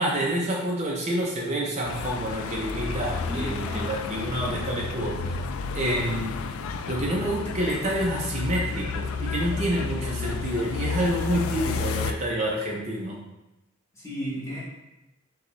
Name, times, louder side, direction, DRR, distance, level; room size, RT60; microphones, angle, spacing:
voice 1, 0.0-5.2 5.7-6.4 6.9-13.2, right 1 dB, 35° right, -2 dB, 0.5 m, -28 dB
sound 1, 1.8-12.1, left 5 dB, 90° left, 0.3 m, -31 dB
voice 2, 3.2-4.0 14.0-14.6, equal, 15° left, -6 dB, 1.1 m, -34 dB
6.4 x 2.3 x 3.0 m, 0.95 s
head